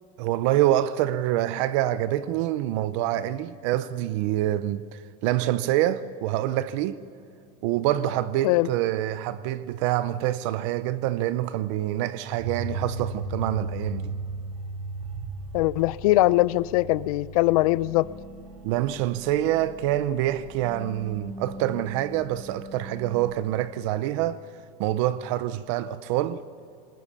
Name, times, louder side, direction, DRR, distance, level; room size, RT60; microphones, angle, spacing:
voice 1, 0.2-7.0 7.6-14.1 18.6-24.5 24.8-26.4, right 13 dB, 50° right, 0.6 m, -26 dB
sound 1, 12.4-23.3, right 2 dB, 30° right, 3.2 m, -38 dB
voice 2, 15.5-18.1, left 18 dB, 65° left, 0.6 m, -21 dB
21.0 x 20.0 x 7.0 m
supercardioid pair, 170°, 20 cm